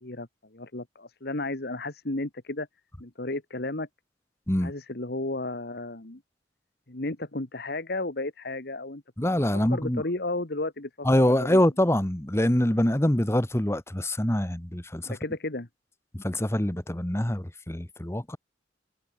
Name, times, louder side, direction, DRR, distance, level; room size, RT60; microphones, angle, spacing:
voice 1, 0.0-2.7 3.0-3.9 4.6-6.2 6.9-9.0 9.7-11.6 15.1-15.7, left 2 dB, 55° left, 1.8 m, -33 dB
voice 2, 9.2-10.0 11.0-15.2 16.1-18.4, left 1 dB, 15° left, 1.2 m, -25 dB
head